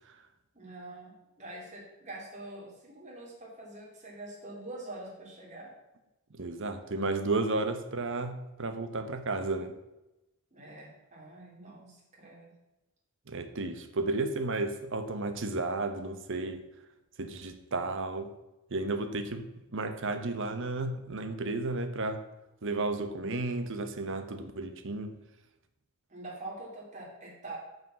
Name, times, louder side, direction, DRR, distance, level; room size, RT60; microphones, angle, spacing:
voice 1, 0.5-5.7 10.5-12.5 26.1-27.6, right 2 dB, 35° right, -3 dB, 2.8 m, -45 dB
voice 2, 6.3-9.7 13.3-16.6 17.2-18.3 18.7-22.2 22.6-25.2, right 2 dB, 60° right, 9 dB, 1.0 m, -33 dB
9.5 x 5.5 x 7.3 m, 0.97 s
head